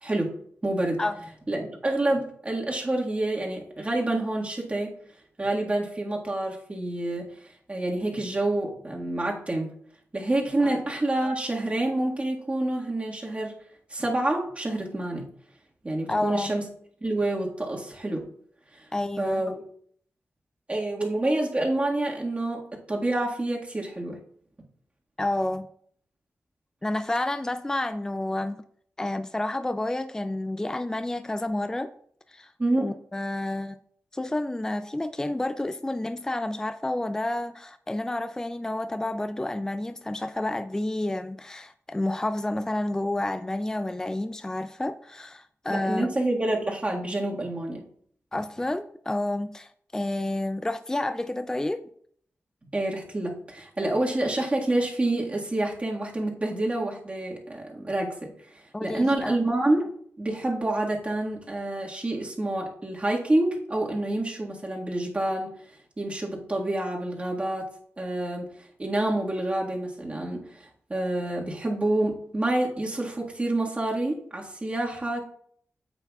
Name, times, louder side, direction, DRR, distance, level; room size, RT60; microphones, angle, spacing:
voice 1, 0.0-1.0 1.5-4.9 5.4-7.4 7.7-9.7 10.1-13.5 13.9-15.3 15.8-16.6 17.0-18.2 18.7-18.9 19.2-19.6 20.7-24.2 32.6-32.9 45.7-47.8 52.7-59.9 60.2-65.5 66.0-67.7 68.0-75.2, right 1 dB, 25° right, 1.7 m, -28 dB
voice 2, 16.1-16.5 18.9-19.4 25.2-25.7 26.8-28.6 29.0-31.9 32.3-32.5 32.8-33.8 34.1-46.2 48.3-51.9 58.7-59.4, left 1 dB, 10° left, 0.3 m, -30 dB
9.5 x 8.0 x 2.3 m
wide cardioid pair, 95°, 5 cm